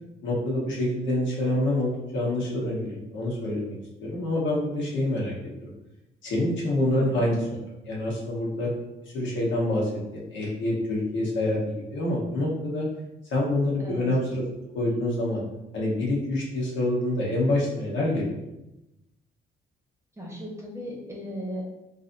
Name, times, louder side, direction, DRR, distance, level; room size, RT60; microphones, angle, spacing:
voice 1, 0.2-3.7 4.0-5.3 6.2-7.4 7.9-8.7 9.1-12.9 13.3-14.4 14.7-15.4 15.7-18.4, left 1 dB, 70° left, -4 dB, 1.0 m, -26 dB
voice 2, 7.0-7.3 13.8-14.0 20.2-21.6, equal, 15° right, -3 dB, 0.9 m, -36 dB
3.2 x 2.5 x 2.6 m, 0.94 s
cardioid pair, 90°, 20 cm